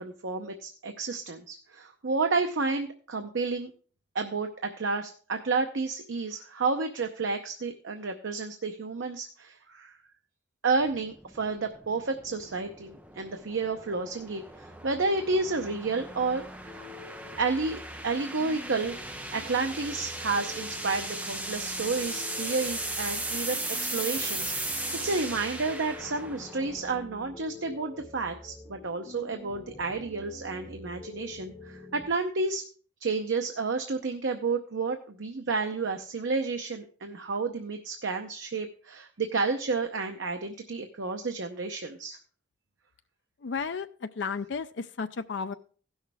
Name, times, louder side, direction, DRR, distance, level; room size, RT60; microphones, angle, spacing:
voice 1, 0.0-3.7 4.1-9.9 10.6-16.9 17.4-19.0 19.3-32.6 33.0-42.2, right 4 dB, 85° right, 5 dB, 0.7 m, -31 dB
sound 1, 10.8-27.0, right 2 dB, 10° right, 0.6 m, -37 dB
sound 2, 13.9-32.1, left 2 dB, 10° left, 1.8 m, -47 dB
voice 2, 43.4-45.5, left 5 dB, 70° left, 9 dB, 0.5 m, -33 dB
16.0 x 6.4 x 3.4 m, 0.42 s
head